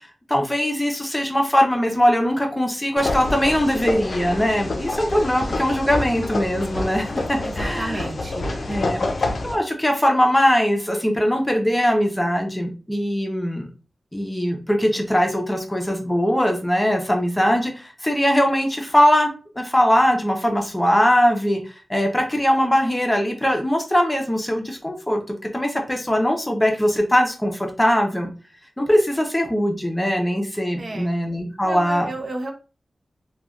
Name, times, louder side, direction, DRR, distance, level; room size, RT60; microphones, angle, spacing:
voice 1, 0.3-8.1 8.7-9.0 9.4-13.7 14.1-25.2 25.5-28.3 28.8-32.1, equal, 15° left, 3 dB, 0.6 m, -21 dB
sound 1, 3.0-9.5, left 2 dB, 55° left, 0.5 m, -27 dB
voice 2, 7.4-8.5 30.8-31.1 31.6-32.5, right 2 dB, 50° right, 3 dB, 0.5 m, -32 dB
3.1 x 2.2 x 2.4 m, 0.34 s
wide cardioid pair, 90°, 0 cm